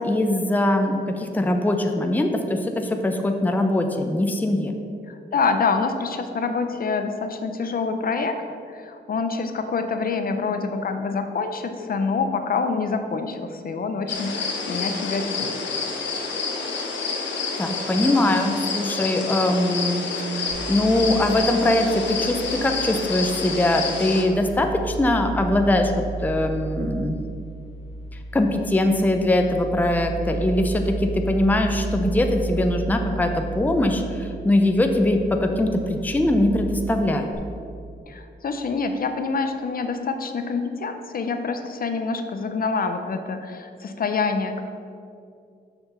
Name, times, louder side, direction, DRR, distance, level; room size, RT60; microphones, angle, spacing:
voice 1, 0.0-4.7 17.6-20.1 20.4-25.9 26.2-27.2 28.3-37.3, left 1 dB, 10° left, 4 dB, 0.5 m, -22 dB
voice 2, 5.1-8.4 8.7-15.5 38.1-44.6, left 4 dB, 55° left, 7 dB, 0.6 m, -26 dB
sound 1, 14.1-24.2, left 4 dB, 90° left, 1.2 m, -28 dB
sound 2, 20.5-37.3, right 4 dB, 40° right, 2.2 m, -33 dB
6.9 x 5.8 x 6.8 m, 2.4 s
wide cardioid pair, 165°, 18 cm